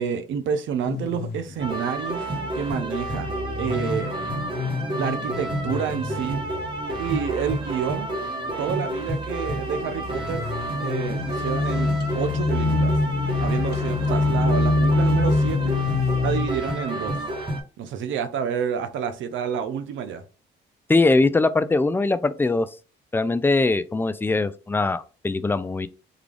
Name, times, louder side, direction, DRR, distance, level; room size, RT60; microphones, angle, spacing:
voice 1, 0.0-2.2 2.5-4.1 5.0-6.4 7.0-8.1 8.6-10.5 10.8-13.0 13.4-15.7 16.2-17.2 17.8-20.2, right 7 dB, 75° right, 0.6 m, -29 dB
sound 1, 0.9-1.8 3.3-7.9 8.2-8.7 10.2-16.5, left 3 dB, 55° left, 0.7 m, -25 dB
sound 2, 1.6-17.6, right 1 dB, 25° right, 1.0 m, -30 dB
voice 2, 20.9-22.7 23.1-25.9, left 3 dB, 10° left, 0.3 m, -21 dB
3.7 x 2.3 x 3.3 m
cardioid pair, 90°, 20 cm